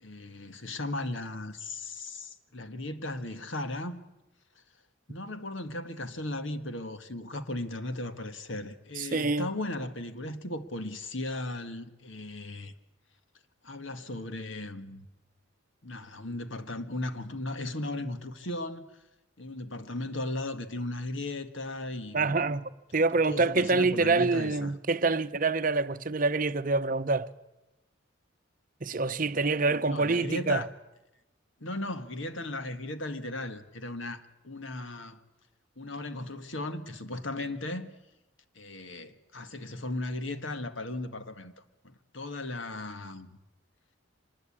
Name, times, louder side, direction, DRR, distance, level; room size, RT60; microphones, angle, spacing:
voice 1, 0.0-4.0 5.1-12.7 13.6-15.0 15.8-18.9 19.4-22.4 23.2-24.7 29.9-30.7 31.6-35.2 35.8-37.9 38.5-41.5 41.8-43.3, left 2 dB, 65° left, 1.7 m, -36 dB
voice 2, 9.0-9.5 22.1-27.3 28.8-30.7, right 3 dB, 40° right, 0.8 m, -26 dB
25.0 x 20.5 x 8.7 m
head